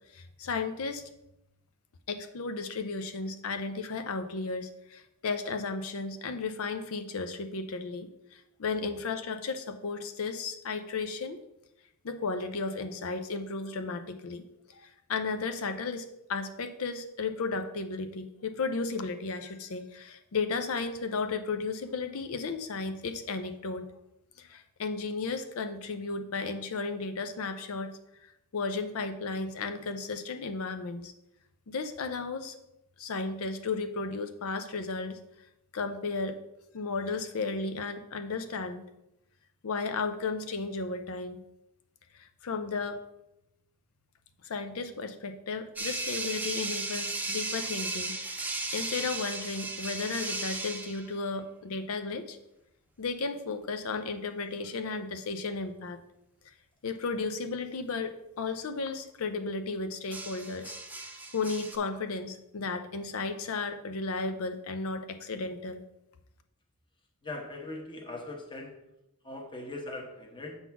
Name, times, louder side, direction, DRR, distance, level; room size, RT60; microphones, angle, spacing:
voice 1, 0.1-1.0 2.1-11.4 12.0-23.9 24.4-27.9 28.2-31.1 31.7-32.5 33.0-35.2 35.7-36.4 36.7-38.8 39.6-41.4 42.1-43.0 44.4-52.4 53.0-56.0 56.8-60.7 61.3-65.8, left 4 dB, 70° left, 8 dB, 0.5 m, -34 dB
sound 1, 45.8-51.1 54.6-54.9 60.1-61.8, right 3 dB, 10° right, 0.6 m, -35 dB
voice 2, 67.2-68.7 69.2-70.6, left 2 dB, 20° left, 1 dB, 1.1 m, -40 dB
7.0 x 4.1 x 5.9 m, 0.87 s
head